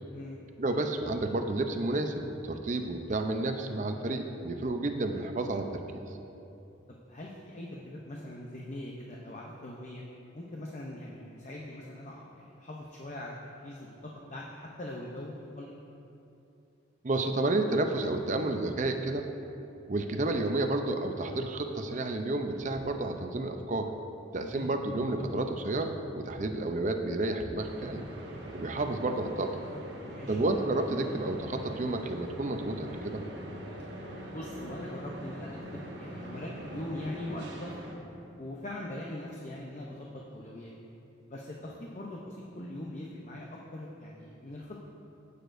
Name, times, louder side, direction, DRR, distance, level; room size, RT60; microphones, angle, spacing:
voice 1, 0.6-5.8 17.0-19.3 19.9-23.9 24.3-28.0 28.5-29.6 30.3-33.2, right 2 dB, 40° right, 6 dB, 0.5 m, -31 dB
voice 2, 6.9-10.0 10.3-13.3 13.6-15.8 24.4-24.7 29.9-30.4 34.3-37.8 38.4-40.7 41.3-44.8, left 1 dB, 40° left, -2 dB, 0.6 m, -42 dB
sound 1, 27.6-37.9, right 1 dB, 65° right, 1.2 m, -43 dB
15.5 x 6.7 x 2.6 m, 2.8 s
head